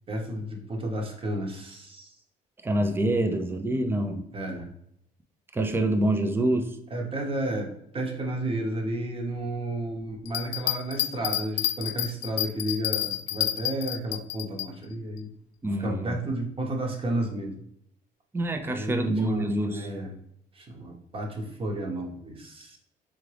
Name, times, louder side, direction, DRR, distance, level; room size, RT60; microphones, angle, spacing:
voice 1, 0.1-2.1 4.3-4.7 6.9-15.3 15.8-17.6 18.6-20.1 20.5-22.8, right 1 dB, 35° right, 1 dB, 1.1 m, -32 dB
voice 2, 2.6-4.2 5.5-6.8 15.6-16.2 18.3-19.9, right 1 dB, 15° right, 6 dB, 0.5 m, -26 dB
Bell, 10.2-14.7 15.2-15.3, left 13 dB, 85° left, 0.4 m, -29 dB
3.7 x 3.6 x 3.3 m, 0.72 s
cardioid pair, 110°, 17 cm